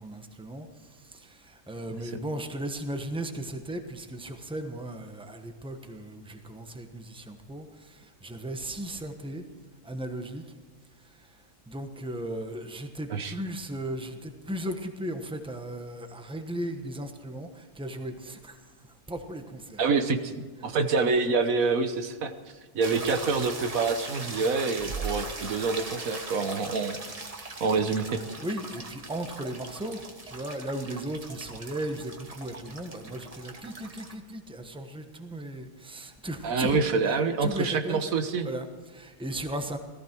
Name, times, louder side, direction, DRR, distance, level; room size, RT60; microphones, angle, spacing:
voice 1, 0.0-9.4 9.8-10.5 11.0-19.8 26.2-26.4 28.4-38.1 38.4-39.8, right 1 dB, 5° right, 6 dB, 1.1 m, -37 dB
voice 2, 19.8-22.3 22.7-28.2 36.4-38.5, right 4 dB, 85° right, 8 dB, 1.5 m, -27 dB
sound 1, 22.8-34.1, right 3 dB, 25° right, 1.4 m, -40 dB
18.0 x 14.5 x 4.5 m, 1.5 s
omnidirectional pair, 1.4 m